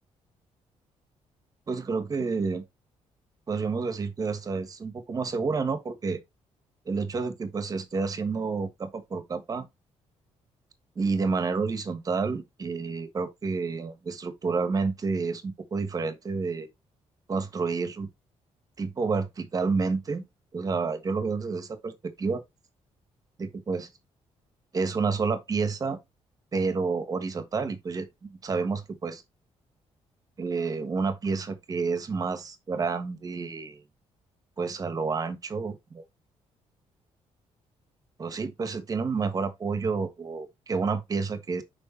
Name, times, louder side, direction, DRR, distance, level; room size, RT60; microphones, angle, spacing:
voice 1, 1.7-2.6 3.5-6.2 6.8-9.7 10.9-16.7 17.3-18.1 18.8-20.2 20.5-22.4 23.4-23.9 24.7-26.0 26.5-29.2 30.4-33.8 34.6-36.0 38.2-41.6, right 4 dB, 30° right, 1.4 m, -29 dB
6.5 x 5.2 x 4.2 m
cardioid pair, 145°, 12 cm